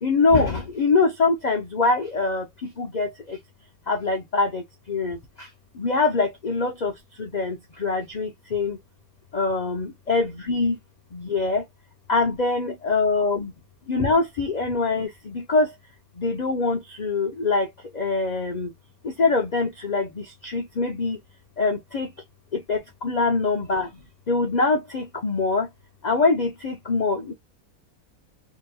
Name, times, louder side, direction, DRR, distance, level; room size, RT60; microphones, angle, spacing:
voice 1, 0.0-2.4 2.8-3.4 3.9-4.6 4.9-5.2 5.8-6.9 7.2-8.8 9.3-10.8 11.1-11.6 12.1-13.5 13.9-15.7 16.2-17.7 17.9-18.7 19.2-20.1 20.4-21.2 21.6-22.1 22.7-22.8 23.0-23.9 24.3-25.7 26.0-27.3, left 3 dB, 85° left, 0.3 m, -23 dB
2.8 x 2.8 x 2.2 m
omnidirectional pair, 1.5 m